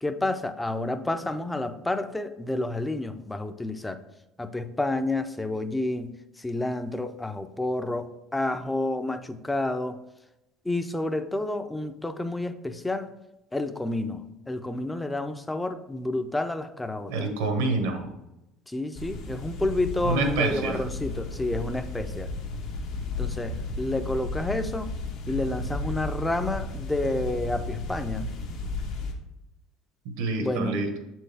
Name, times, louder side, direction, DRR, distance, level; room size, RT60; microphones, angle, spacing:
voice 1, 0.0-4.0 4.4-10.0 10.6-13.1 13.5-17.1 18.7-22.3 23.2-24.9 25.3-28.4 30.4-30.9, left 2 dB, 10° left, 10 dB, 0.4 m, -30 dB
voice 2, 17.1-18.1 20.0-20.8 30.0-31.0, right 3 dB, 85° right, 5 dB, 1.1 m, -27 dB
sound 1, 18.9-29.1, left 2 dB, 70° left, 1.1 m, -34 dB
6.9 x 4.4 x 3.4 m, 0.91 s
cardioid pair, 115°, 0 cm